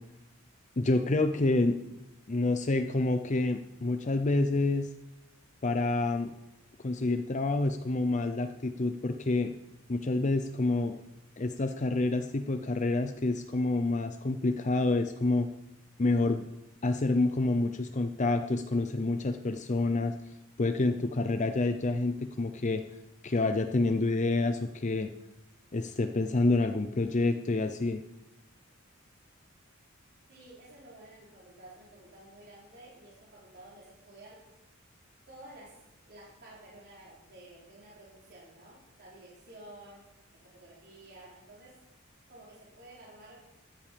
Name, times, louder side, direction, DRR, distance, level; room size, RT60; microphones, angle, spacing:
voice 1, 0.8-1.8 2.3-4.9 5.6-6.3 6.8-9.5 9.9-10.9 11.4-15.5 16.0-16.5 16.8-20.1 20.6-22.8 23.2-25.1 25.7-28.0, left 2 dB, 35° left, 8 dB, 0.6 m, -28 dB
voice 2, 30.3-34.4 35.3-35.8 36.1-40.0 40.3-41.8 42.3-43.4, right 1 dB, 50° right, -5 dB, 3.8 m, -52 dB
13.5 x 10.5 x 5.1 m, 0.92 s
head